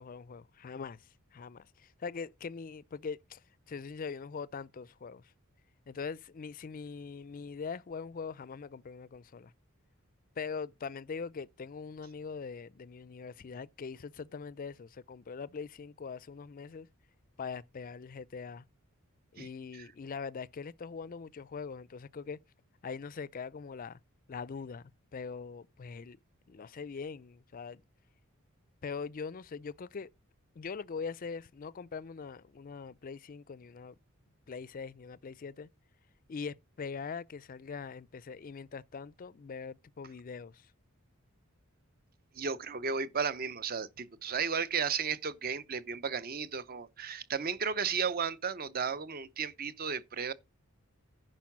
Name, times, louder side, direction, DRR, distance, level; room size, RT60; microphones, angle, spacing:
voice 1, 0.0-3.4 3.7-5.3 5.9-9.5 10.4-16.9 17.4-18.7 19.3-22.4 22.8-24.0 24.3-26.2 26.5-27.8 28.8-30.1 30.6-34.0 34.5-35.7 36.3-40.7, left 5 dB, 40° left, 0.4 m, -42 dB
voice 2, 19.4-19.9 42.3-50.3, right 6 dB, 45° right, 0.7 m, -34 dB
10.5 x 4.6 x 5.9 m
head